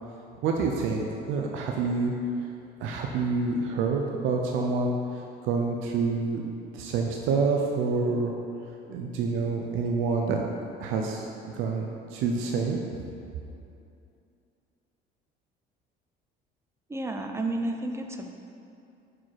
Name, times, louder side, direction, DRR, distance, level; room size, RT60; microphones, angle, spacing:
voice 1, 0.4-2.1 2.8-5.0 5.4-6.4 6.7-8.3 8.9-10.4 10.8-13.1, right 4 dB, 80° right, 1 dB, 0.6 m, -27 dB
voice 2, 16.9-18.3, right 2 dB, 15° right, 4 dB, 0.5 m, -31 dB
5.7 x 4.9 x 4.7 m, 2.6 s
cardioid pair, 100°, 20 cm